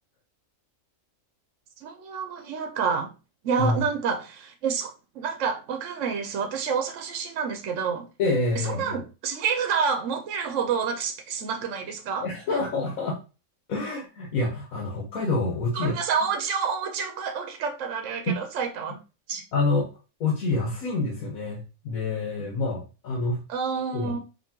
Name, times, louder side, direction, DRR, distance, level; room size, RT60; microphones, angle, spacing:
voice 1, 1.8-3.1 3.4-8.1 8.6-12.2 15.7-19.0 19.3-19.4 23.5-24.2, right 6 dB, 70° right, 1.0 m, -28 dB
voice 2, 8.2-9.0 12.2-13.2 13.7-16.0 18.3-18.4 19.3-19.9 20.2-23.4 23.9-24.1, left 3 dB, 85° left, 1.4 m, -27 dB
5.2 x 2.9 x 2.8 m
omnidirectional pair, 1.4 m